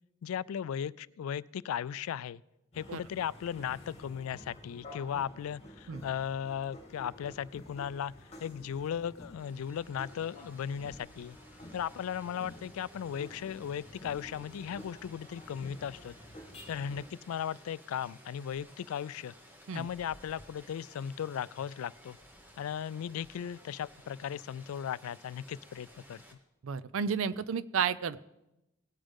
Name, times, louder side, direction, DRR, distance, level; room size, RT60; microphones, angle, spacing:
voice 1, 0.2-2.4 2.7-8.1 8.4-11.4 11.7-16.1 16.7-19.3 19.7-22.2 22.6-26.4, left 8 dB, 85° left, 20 dB, 0.3 m, -37 dB
sound 1, 2.7-17.1, left 1 dB, 30° left, 2.6 m, -51 dB
Rain, 9.4-26.3, equal, 10° right, 1.3 m, -57 dB
voice 2, 26.6-28.2, right 6 dB, 70° right, 17 dB, 0.5 m, -32 dB
19.0 x 8.8 x 3.6 m, 0.93 s
head